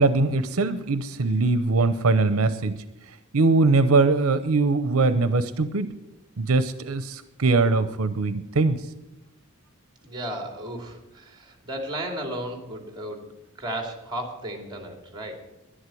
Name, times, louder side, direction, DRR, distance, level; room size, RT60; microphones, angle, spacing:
voice 1, 0.0-2.8 3.3-5.9 6.4-8.8, right 3 dB, 85° right, 12 dB, 0.8 m, -21 dB
voice 2, 10.0-13.3 13.5-15.4, right 1 dB, 20° right, 4 dB, 2.7 m, -34 dB
11.5 x 11.5 x 7.7 m, 0.93 s
head